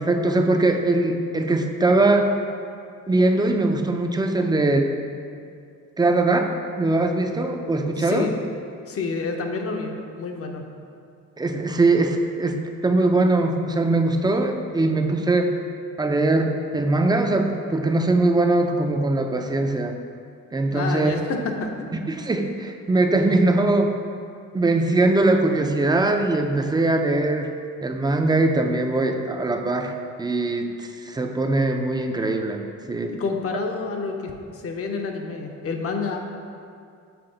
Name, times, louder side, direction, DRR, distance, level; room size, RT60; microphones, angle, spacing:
voice 1, 0.0-2.3 3.1-4.9 6.0-8.3 11.4-12.6 12.8-15.6 16.0-20.0 20.5-21.1 22.1-23.9 24.5-27.5 27.8-29.9 30.2-32.6 32.9-33.1, right 2 dB, 15° right, 4 dB, 0.4 m, -21 dB
voice 2, 8.0-8.3 8.9-10.7 20.7-21.9 33.1-36.2, left 4 dB, 50° left, 3 dB, 0.7 m, -28 dB
5.9 x 4.3 x 3.9 m, 2.4 s
cardioid pair, 90°, 30 cm